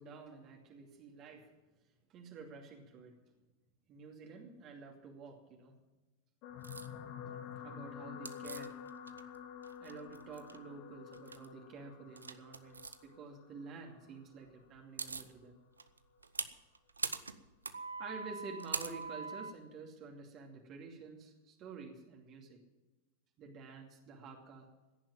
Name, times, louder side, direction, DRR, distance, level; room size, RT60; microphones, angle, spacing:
voice 1, 0.0-1.5 2.1-3.2 3.9-5.7 7.6-8.8 9.8-15.6 18.0-22.6 23.4-24.7, right 4 dB, 35° right, 1 dB, 2.6 m, -50 dB
sound 1, 6.4-14.9 15.6-15.9 16.1-16.2, left 8 dB, 45° left, 1.6 m, -49 dB
sound 2, 6.6-6.9 8.3-9.4 9.6-10.6 11.1-11.5 12.2-13.0 14.5-14.6 14.7-15.3 15.8-19.5, right 4 dB, 75° right, 0.8 m, -42 dB
16.5 x 10.5 x 7.3 m, 1.1 s
figure-of-eight pair, 90°, 0 cm